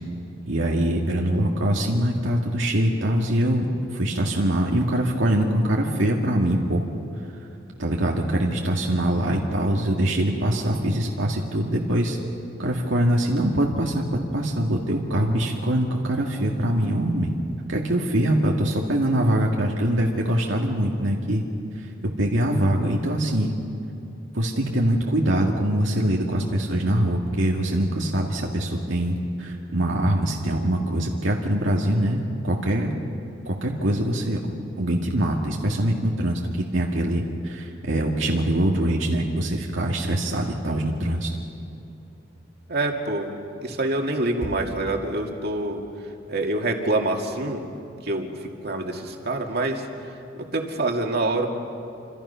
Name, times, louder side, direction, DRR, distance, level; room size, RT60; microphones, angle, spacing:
voice 1, 0.5-3.7 3.9-6.8 7.8-12.2 12.6-17.3 17.7-21.4 21.8-23.5 24.3-32.9 33.5-34.4 34.8-36.4 36.7-41.3, right 1 dB, 85° right, -1 dB, 1.9 m, -23 dB
voice 2, 42.7-45.8 46.3-47.6 48.0-49.8 50.4-51.5, right 2 dB, 60° right, 2 dB, 2.3 m, -26 dB
27.5 x 26.5 x 5.7 m, 2.7 s
head